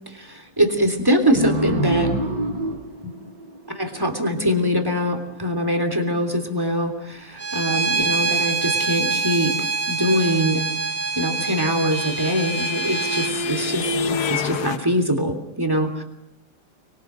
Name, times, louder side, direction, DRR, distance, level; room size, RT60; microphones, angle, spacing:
voice 1, 0.1-2.1 3.7-10.6 11.1-16.0, equal, 10° right, 4 dB, 3.2 m, -23 dB
sound 1, 1.4-4.5, right 1 dB, 80° right, 4.8 m, -26 dB
Bowed string instrument, 7.4-13.3, right 4 dB, 35° right, 0.7 m, -25 dB
sound 2, 10.9-14.8, left 4 dB, 70° left, 1.7 m, -28 dB
25.0 x 22.5 x 6.3 m, 0.86 s
omnidirectional pair, 1.8 m